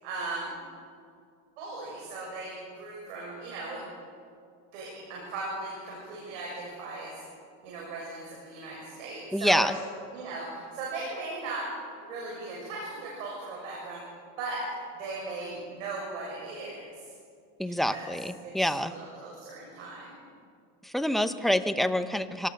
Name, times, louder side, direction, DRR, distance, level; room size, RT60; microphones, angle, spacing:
voice 1, 0.0-0.5 1.6-3.9 4.7-7.2 7.6-9.7 10.1-11.7 12.0-14.0 14.4-16.9 17.6-18.1 18.4-20.2, right 3 dB, 90° right, -3 dB, 6.7 m, -38 dB
voice 2, 9.3-9.8 17.6-18.9 20.8-22.5, left 1 dB, ahead, 9 dB, 0.8 m, -27 dB
24.0 x 19.0 x 6.6 m, 2.3 s
supercardioid pair, 125°, 37 cm